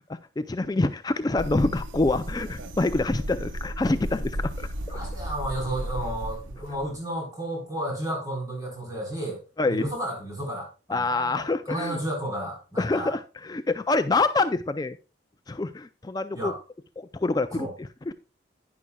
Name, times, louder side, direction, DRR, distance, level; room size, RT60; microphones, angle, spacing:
voice 1, 0.1-4.7 9.6-9.9 10.9-12.0 12.8-15.0 15.5-16.5 17.0-18.1, left 2 dB, 20° left, 10 dB, 0.4 m, -26 dB
sound 1, 1.4-7.0, equal, 90° right, 0.9 m, -34 dB
voice 2, 4.9-9.4 9.7-13.1 16.3-16.6 17.5-17.7, right 1 dB, 20° right, -1 dB, 3.9 m, -32 dB
11.0 x 9.8 x 2.2 m, 0.32 s
head